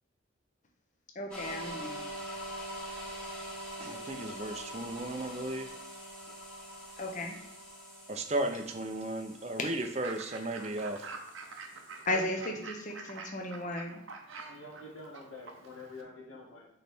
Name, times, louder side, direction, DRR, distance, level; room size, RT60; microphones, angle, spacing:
voice 1, 1.1-2.0 7.0-7.4 12.1-12.4 12.7-14.0, left 1 dB, 40° left, 2 dB, 0.8 m, -35 dB
sound 1, 1.3-12.0, equal, 5° left, 1.5 m, -44 dB
voice 2, 3.8-5.7 8.1-11.1, right 2 dB, 30° right, 5 dB, 0.5 m, -35 dB
Fowl / Bird, 9.8-16.0, right 4 dB, 80° right, 0.9 m, -47 dB
voice 3, 11.8-12.7 14.5-16.7, left 1 dB, 85° left, -2 dB, 1.8 m, -47 dB
6.7 x 3.2 x 4.3 m, 0.81 s
head